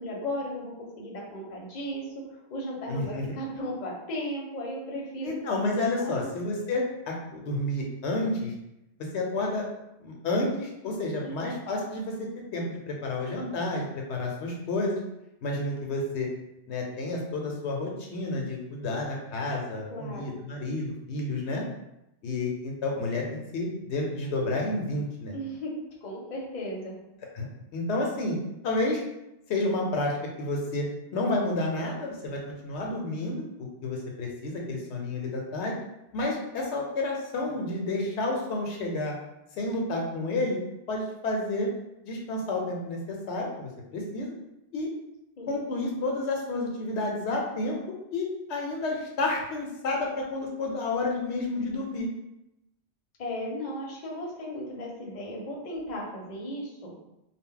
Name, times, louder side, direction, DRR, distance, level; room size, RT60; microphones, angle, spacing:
voice 1, 0.0-5.3 6.0-6.3 11.2-11.4 19.9-20.3 25.3-25.7 26.0-27.0 45.4-45.5 53.2-56.9, equal, 45° left, -2 dB, 0.7 m, -36 dB
voice 2, 2.9-3.2 5.2-8.5 9.1-9.7 10.0-15.0 15.4-16.3 16.7-21.6 22.2-25.4 27.3-27.5 27.7-28.4 28.6-29.0 29.5-30.9 31.1-35.7 36.1-39.1 39.5-40.6 40.9-41.7 42.0-44.3 44.7-44.9 45.5-47.8 48.1-52.1, left 2 dB, 75° left, 0 dB, 0.8 m, -30 dB
2.2 x 2.0 x 3.6 m, 0.88 s
omnidirectional pair, 1.1 m